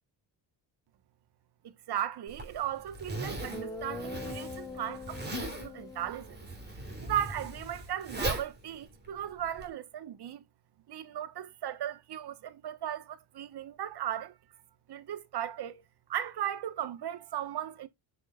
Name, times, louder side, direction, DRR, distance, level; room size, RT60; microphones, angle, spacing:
voice 1, 1.6-6.5 7.0-10.4 10.9-14.4 14.9-15.8 16.1-17.9, right 10 dB, 55° right, 1.2 m, -37 dB
Zipper (clothing), 2.3-9.7, right 1 dB, 20° right, 3.3 m, -39 dB
Guitar, 2.9-3.0 3.5-7.6, left 3 dB, 10° left, 2.7 m, -44 dB
7.7 x 6.5 x 2.4 m
cardioid pair, 95°, 45 cm